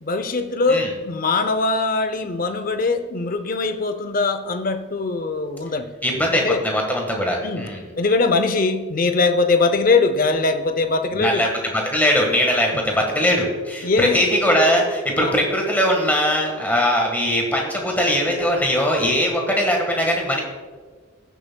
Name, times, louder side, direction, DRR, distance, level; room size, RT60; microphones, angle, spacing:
voice 1, 0.0-6.6 7.4-7.6 8.0-11.4 13.8-14.2 15.2-15.3, left 3 dB, 40° left, 9 dB, 0.6 m, -21 dB
voice 2, 6.0-7.9 11.1-20.4, equal, 10° left, 0 dB, 1.5 m, -20 dB
16.5 x 7.2 x 2.3 m, 1.5 s
head